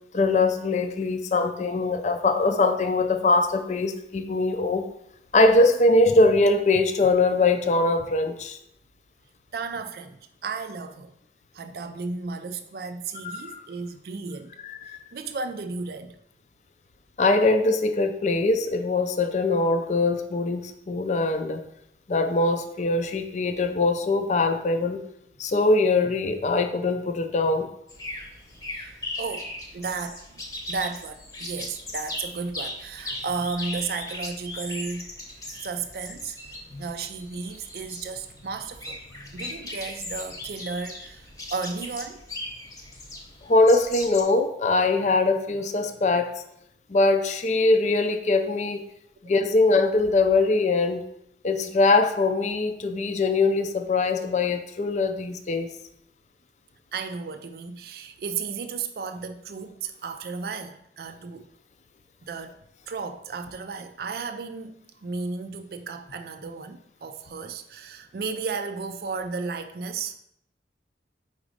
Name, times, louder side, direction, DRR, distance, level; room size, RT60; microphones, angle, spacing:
voice 1, 0.1-4.9 5.3-8.6 13.2-13.6 14.6-15.0 17.2-21.6 22.1-25.0 25.4-27.7 36.7-36.8 43.4-46.3 46.9-48.8 49.2-51.0 51.4-55.7, left 3 dB, 40° left, 0.4 m, -22 dB
voice 2, 9.5-10.2 10.4-11.1 11.5-14.5 14.9-16.2 28.7-30.4 30.7-35.1 35.6-36.4 36.8-39.0 39.3-42.2 56.9-61.5 62.3-62.6 62.9-70.2, right 4 dB, 60° right, 0.4 m, -34 dB
sound 1, 27.9-44.2, left 1 dB, 20° left, 0.9 m, -38 dB
4.9 x 4.1 x 4.9 m
head